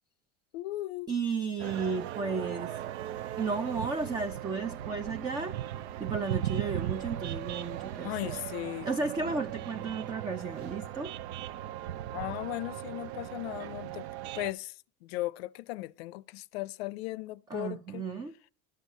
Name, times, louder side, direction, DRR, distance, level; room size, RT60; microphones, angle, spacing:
voice 1, 0.5-1.1 8.0-8.9 12.1-14.1 14.3-18.0, left 18 dB, 75° left, 0.6 m, -37 dB
voice 2, 1.1-2.7 3.4-5.6 6.0-8.3 8.8-11.1 17.5-18.3, right 4 dB, 15° right, 0.4 m, -33 dB
sound 1, 1.6-14.5, right 12 dB, 85° right, 0.6 m, -38 dB
12.0 x 6.4 x 5.4 m
supercardioid pair, 145°, 31 cm